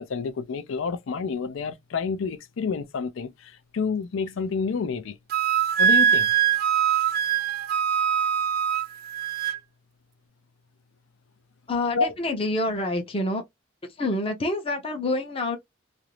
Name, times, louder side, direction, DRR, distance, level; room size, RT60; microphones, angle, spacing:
voice 1, 0.0-5.2 5.8-6.3 11.9-12.1, left 5 dB, 70° left, 0.4 m, -29 dB
Wind instrument woodwind instrument, 5.3-9.6, right 8 dB, 45° right, 0.3 m, -22 dB
voice 2, 11.7-13.4 13.8-15.6, left 2 dB, 30° left, 0.6 m, -27 dB
2.5 x 2.0 x 2.9 m
head